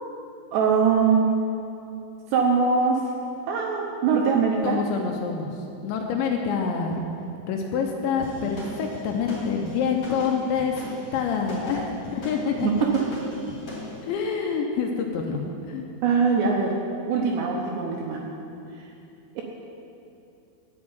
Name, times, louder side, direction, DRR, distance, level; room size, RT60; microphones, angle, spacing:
voice 1, 0.5-1.3 2.3-3.0 3.5-4.8 11.8-11.9 12.6-12.7 16.0-16.7 17.1-18.2, right 5 dB, 75° right, 0 dB, 2.6 m, -22 dB
voice 2, 4.6-5.5 5.8-7.1 7.5-10.8 11.1-11.9 12.1-12.7 14.0-15.9, left 6 dB, 80° left, 2 dB, 2.8 m, -26 dB
sound 1, 8.2-13.9, left 1 dB, 30° left, 2.8 m, -38 dB
10.5 x 6.6 x 8.7 m, 2.7 s
omnidirectional pair, 5.7 m